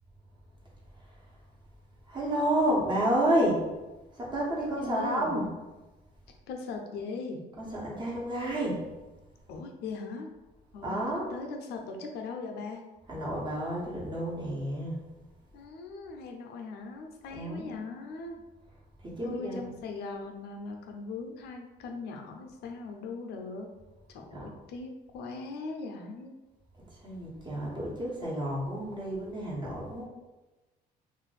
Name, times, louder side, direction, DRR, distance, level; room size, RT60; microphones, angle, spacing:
voice 1, 2.1-3.7 4.1-5.5 7.6-8.8 10.8-11.3 13.1-14.9 17.3-17.7 19.0-19.7 24.3-24.5 26.9-30.0, right 1 dB, 25° right, -5 dB, 1.2 m, -30 dB
voice 2, 4.8-5.3 6.5-7.4 9.5-10.3 10.7-11.0 11.3-12.8 15.5-18.4 19.2-23.7 24.1-26.4, left 3 dB, 75° left, 3 dB, 0.5 m, -39 dB
2.6 x 2.5 x 3.9 m, 1.1 s
cardioid pair, 110°, 17 cm